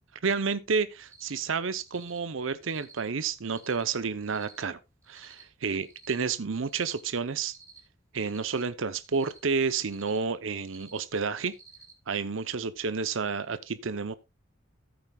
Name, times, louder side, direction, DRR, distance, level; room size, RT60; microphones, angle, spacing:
voice 1, 0.2-4.8 5.1-7.5 8.1-11.5 12.1-14.1, right 5 dB, 75° right, 0.7 m, -30 dB
Cricket, 1.0-1.4 1.8-2.2 2.6-3.0 3.4-3.8 4.2-4.6 5.0-5.4 5.8-6.2 6.6-7.0 7.4-7.8 8.2-8.6 9.0-9.4 9.8-10.2 10.6-11.0 11.5-11.9, right 4 dB, 15° right, 2.5 m, -54 dB
14.5 x 8.8 x 2.3 m
head